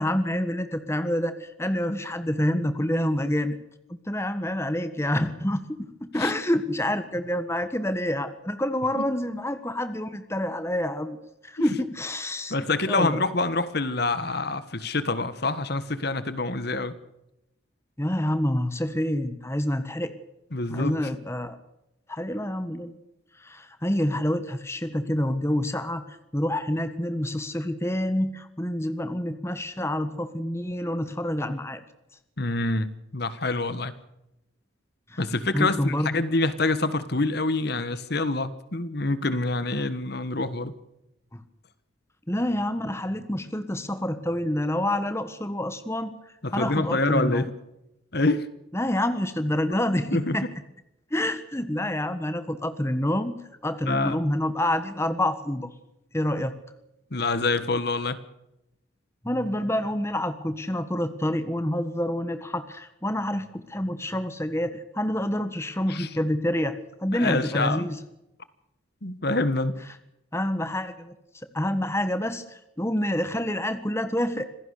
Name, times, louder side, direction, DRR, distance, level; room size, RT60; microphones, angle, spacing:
voice 1, 0.0-3.6 4.1-11.2 11.4-12.5 12.9-13.3 18.0-20.1 20.7-21.6 22.1-22.9 23.4-31.8 35.1-35.2 35.5-36.2 41.3-41.4 42.3-46.1 46.5-47.5 48.7-50.5 51.1-53.4 53.6-55.7 56.1-56.5 59.2-68.0 70.3-74.5, left 1 dB, 15° left, 10 dB, 1.4 m, -27 dB
voice 2, 12.5-16.9 20.5-21.0 32.4-33.9 35.2-40.7 46.4-47.5 48.1-48.5 50.1-50.5 53.8-54.2 57.1-58.2 65.9-66.1 67.1-67.9 69.0-69.8, left 2 dB, 50° left, 13 dB, 1.5 m, -26 dB
26.5 x 16.5 x 6.6 m, 0.89 s
head